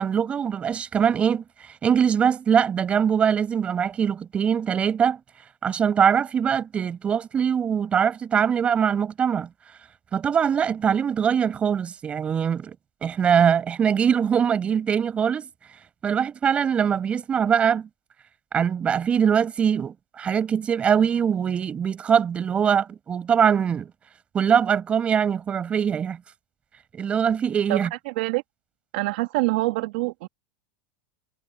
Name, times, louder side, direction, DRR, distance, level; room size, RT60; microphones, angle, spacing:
voice 1, 0.0-1.4 1.8-5.2 5.6-9.5 10.1-12.8 13.0-15.5 16.0-17.9 18.5-23.9 24.3-26.2 26.9-27.9, right 7 dB, 20° right, 5.4 m, -22 dB
voice 2, 28.9-30.3, right 21 dB, 70° right, 2.1 m, -25 dB
supercardioid pair, 150°, 5 cm